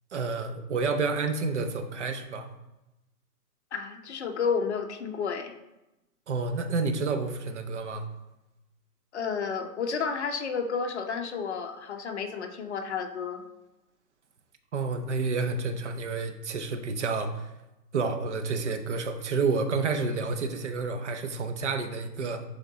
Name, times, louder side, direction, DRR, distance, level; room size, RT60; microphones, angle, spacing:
voice 1, 0.1-2.5 6.3-8.1 14.7-17.5 17.9-22.4, right 4 dB, 45° right, 7 dB, 0.8 m, -29 dB
voice 2, 3.7-5.5 9.1-13.4, left 5 dB, 45° left, 5 dB, 0.8 m, -31 dB
10.5 x 3.8 x 3.9 m, 0.98 s
hypercardioid pair, 155°, 48 cm